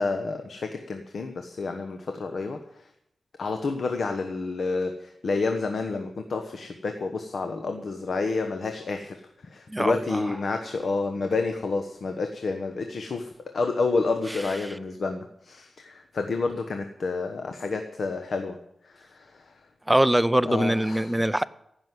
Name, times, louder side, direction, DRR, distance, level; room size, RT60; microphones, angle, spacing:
voice 1, 0.0-2.9 3.4-18.6 18.8-19.7 20.4-21.2, left 3 dB, 65° left, 1.0 m, -29 dB
voice 2, 9.7-10.2 19.9-21.5, right 1 dB, 10° right, 0.5 m, -23 dB
15.5 x 6.3 x 9.3 m
wide cardioid pair, 95°, 0 cm